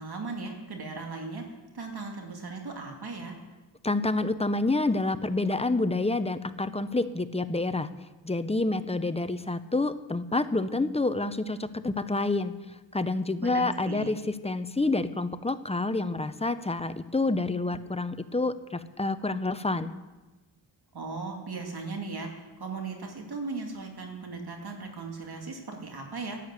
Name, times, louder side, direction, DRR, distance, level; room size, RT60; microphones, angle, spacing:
voice 1, 0.0-3.4 13.4-14.1 20.9-26.4, right 3 dB, 55° right, 2 dB, 2.2 m, -37 dB
voice 2, 3.8-7.9 8.2-12.5 12.9-19.9, left 2 dB, 15° left, 12 dB, 0.6 m, -28 dB
11.0 x 10.0 x 8.1 m, 1.2 s
wide cardioid pair, 85°, 45 cm